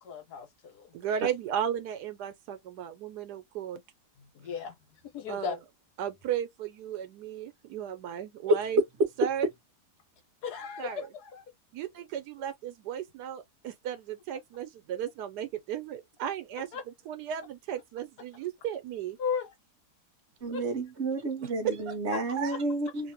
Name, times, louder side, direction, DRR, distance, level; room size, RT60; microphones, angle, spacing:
voice 1, 0.0-0.9 4.3-4.8 5.1-5.6 10.4-11.4 16.7-16.8 19.2-19.5 20.5-20.6 22.5-22.6, left 6 dB, 75° left, 1.5 m, -35 dB
voice 2, 0.9-3.8 5.3-5.6 6.0-8.8 9.2-9.5 10.8-11.1 11.7-16.7 17.1-19.2 21.6-21.9 22.4-22.6, right 9 dB, 85° right, 1.2 m, -35 dB
voice 3, 20.4-23.1, right 2 dB, 55° right, 0.8 m, -30 dB
2.8 x 2.6 x 2.8 m
omnidirectional pair, 1.7 m